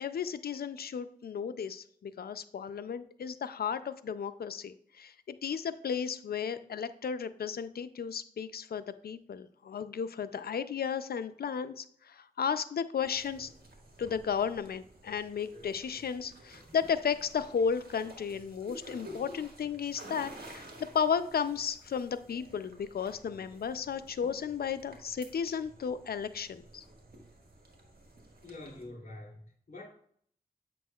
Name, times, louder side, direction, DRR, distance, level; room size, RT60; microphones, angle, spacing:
voice 1, 0.0-13.5 14.0-20.7 20.9-26.8, left 7 dB, 85° left, 12 dB, 0.4 m, -34 dB
sound 1, 13.0-28.8, right 1 dB, 75° right, 1.6 m, -52 dB
voice 2, 28.4-29.9, left 2 dB, 70° left, -3 dB, 2.8 m, -46 dB
8.1 x 6.0 x 2.3 m, 0.63 s
wide cardioid pair, 60°, 16 cm